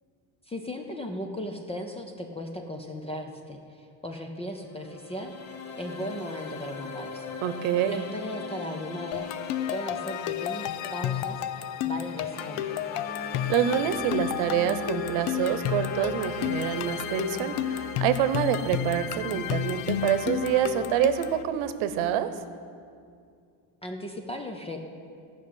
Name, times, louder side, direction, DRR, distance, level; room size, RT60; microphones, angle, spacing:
voice 1, 0.5-5.3 5.8-7.4 7.9-9.3 9.7-11.4 11.8-12.8 23.8-24.8, equal, 15° left, 4 dB, 0.5 m, -37 dB
sound 1, 4.4-21.5, left 3 dB, 35° left, 0.9 m, -40 dB
voice 2, 7.4-8.0 13.5-22.3, right 10 dB, 75° right, 11 dB, 1.0 m, -26 dB
sound 2, 9.1-21.4, left 11 dB, 90° left, 0.7 m, -32 dB
Musical instrument, 13.5-21.5, right 7 dB, 75° left, 3.1 m, -51 dB
14.0 x 6.3 x 9.3 m, 2.3 s
cardioid pair, 170°, 49 cm